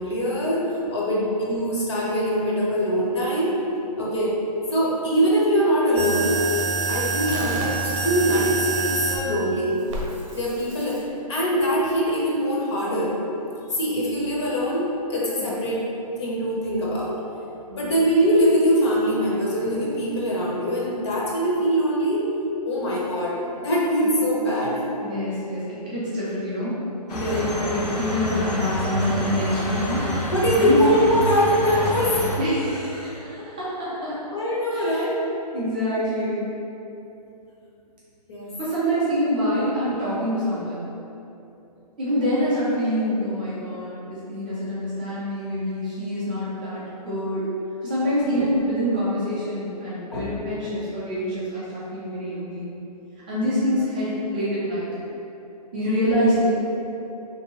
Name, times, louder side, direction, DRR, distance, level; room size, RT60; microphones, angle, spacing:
voice 1, 0.0-3.6 4.0-4.4 4.7-6.4 6.9-9.8 10.3-11.0 11.3-13.2 13.7-15.8 16.2-17.2 17.8-22.3 22.6-24.9 27.1-27.5 30.3-32.2 34.3-35.2 38.3-38.5 48.2-48.5 50.1-50.3 55.9-56.1, equal, 45° left, -5 dB, 0.6 m, -23 dB
sound 1, 6.0-9.2 9.9-11.0, right 4 dB, 50° right, 0.7 m, -26 dB
voice 2, 25.0-26.8 27.1-30.1 30.5-30.8 32.4-34.2 34.7-35.1 35.5-36.5 38.6-40.9 42.0-47.5 47.8-52.7 53.3-54.9 55.7-56.5, equal, 15° right, -10 dB, 0.4 m, -26 dB
sound 2, 27.1-32.4, equal, 90° left, 0.8 m, -28 dB
3.3 x 2.6 x 2.9 m, 2.9 s
hypercardioid pair, 170°, 20 cm